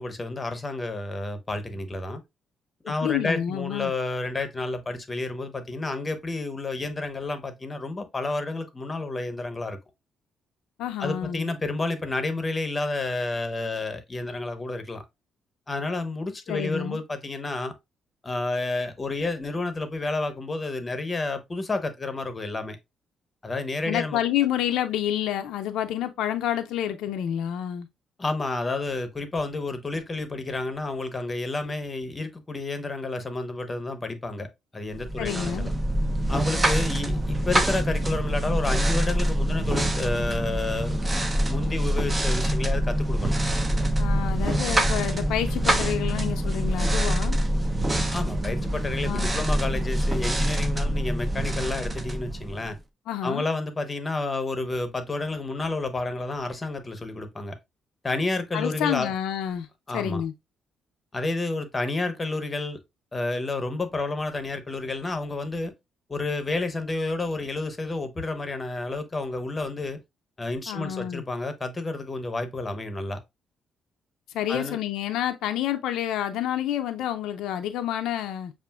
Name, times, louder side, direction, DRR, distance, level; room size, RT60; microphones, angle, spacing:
voice 1, 0.0-2.2 2.8-9.8 11.0-15.0 15.7-17.7 18.2-22.8 23.4-24.2 28.2-34.5 34.7-35.7 36.3-43.4 48.1-52.8 53.2-57.6 58.0-59.1 59.9-60.2 61.1-62.8 63.1-65.7 66.1-70.0 70.4-73.2 74.5-74.8, left 2 dB, 25° left, 0.8 m, -30 dB
voice 2, 3.0-3.9 10.8-11.5 16.5-17.0 23.9-27.9 35.2-35.7 44.0-47.4 49.1-49.3 53.1-53.4 58.5-59.7 59.9-60.3 70.7-71.2 74.3-78.5, left 11 dB, 85° left, 0.4 m, -28 dB
sound 1, 34.9-52.8, right 1 dB, 20° right, 0.6 m, -25 dB
6.7 x 2.4 x 2.3 m
cardioid pair, 90°, 0 cm